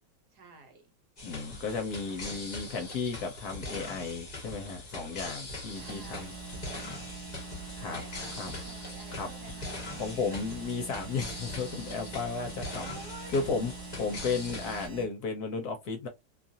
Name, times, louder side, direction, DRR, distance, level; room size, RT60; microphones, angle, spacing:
voice 1, 0.3-0.9 2.1-2.4 5.7-6.3 6.6-7.0 7.7-10.4 12.8-13.4, right 3 dB, 65° right, 1.3 m, -51 dB
voice 2, 1.2-6.3 7.8-8.0 8.4-8.5 9.2-9.3 10.0-12.9 13.3-13.7 14.0-16.1, left 4 dB, 65° left, 1.0 m, -34 dB
sound 1, 1.2-14.9, left 2 dB, 35° left, 0.7 m, -42 dB
sound 2, 5.7-15.1, right 4 dB, 80° right, 0.6 m, -44 dB
2.9 x 2.4 x 2.6 m
omnidirectional pair, 2.0 m